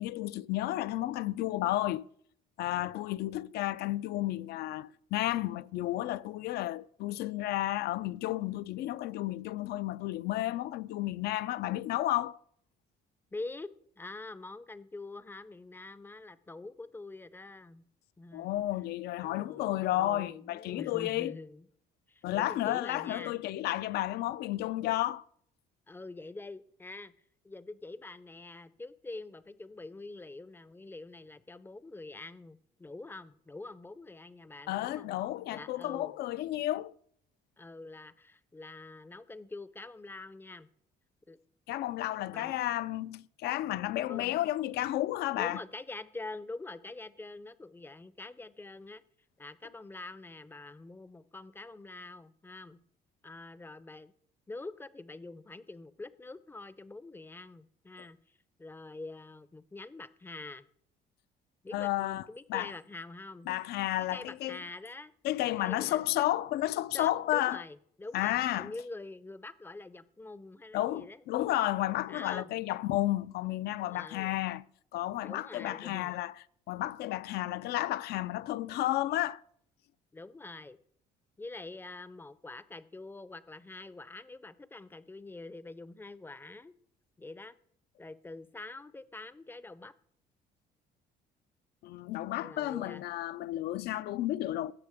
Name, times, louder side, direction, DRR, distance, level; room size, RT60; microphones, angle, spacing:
voice 1, 0.0-2.0 2.6-12.4 18.3-21.3 22.2-25.2 34.7-36.9 41.7-45.6 61.7-62.7 63.5-64.6 65.2-67.6 68.1-68.7 70.7-74.6 74.9-76.3 76.7-79.4 91.8-94.7, left 15 dB, 70° left, 0.4 m, -32 dB
voice 2, 13.3-13.7 14.0-17.9 18.2-18.5 19.2-21.7 22.1-23.4 25.9-27.1 27.4-35.2 35.5-36.2 37.6-40.7 41.3-41.4 42.3-42.6 44.1-44.4 45.3-49.0 49.4-52.8 53.2-54.1 54.5-60.7 61.6-63.5 64.0-65.1 65.6-66.3 66.9-71.2 72.1-72.5 73.9-74.4 75.2-76.1 80.1-80.8 81.4-86.7 87.2-87.5 88.0-89.9 92.3-93.0, left 2 dB, 10° left, 0.5 m, -45 dB
16.5 x 6.9 x 3.5 m
cardioid pair, 110°, 17 cm